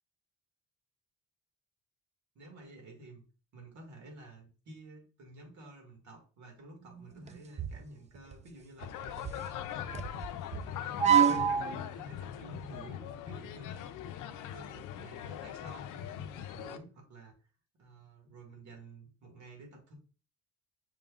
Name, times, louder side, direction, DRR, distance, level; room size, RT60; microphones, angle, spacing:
voice 1, 2.4-3.2 3.5-9.1 9.4-10.2 10.5-13.9 14.3-17.3 17.8-20.0, right 2 dB, 70° right, 2 dB, 1.9 m, -52 dB
sound 1, 7.0-7.8 8.1-8.3 8.8-11.9 12.5-12.8, right 8 dB, 25° right, 0.3 m, -28 dB
sound 2, 8.8-16.8, left 10 dB, 85° left, 0.5 m, -41 dB
5.9 x 2.3 x 3.6 m, 0.36 s
cardioid pair, 90°, 30 cm